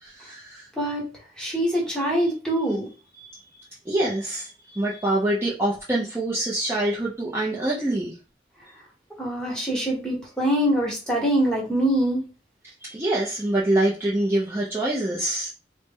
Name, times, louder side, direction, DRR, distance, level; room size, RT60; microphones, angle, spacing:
voice 1, 0.0-0.7 3.2-3.4 3.9-8.2 12.8-15.5, right 1 dB, 15° right, 0.6 m, -25 dB
voice 2, 1.4-2.9 9.2-12.2, right 1 dB, 5° left, 1.1 m, -24 dB
3.9 x 2.1 x 3.6 m
head